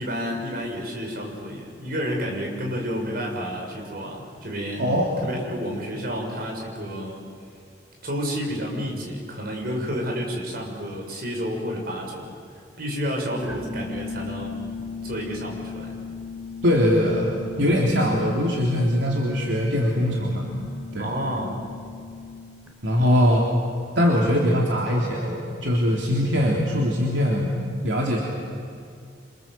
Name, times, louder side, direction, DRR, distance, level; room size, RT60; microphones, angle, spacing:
voice 1, 0.0-4.9 5.2-7.2 8.0-12.3 12.8-14.5 15.0-16.0 21.0-21.6 23.0-23.5 24.1-24.3, equal, 55° right, 0 dB, 6.4 m, -30 dB
sound 1, 13.4-22.7, left 4 dB, 10° right, 4.8 m, -37 dB
voice 2, 16.6-20.5 20.9-21.1 22.8-23.4 24.0-27.5 27.8-28.2, equal, 75° right, -2 dB, 3.6 m, -22 dB
28.0 x 27.0 x 7.7 m, 2.3 s
head